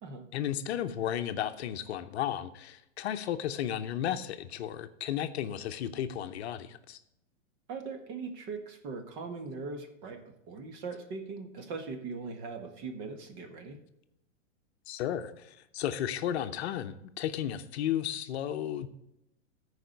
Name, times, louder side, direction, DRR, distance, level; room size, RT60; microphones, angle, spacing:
voice 1, 0.3-7.0 14.9-18.9, left 10 dB, 55° left, 9 dB, 0.8 m, -34 dB
voice 2, 7.7-10.2 10.5-13.8, right 4 dB, 35° right, 6 dB, 1.5 m, -40 dB
14.0 x 4.9 x 5.2 m, 0.83 s
hypercardioid pair, 150°, 38 cm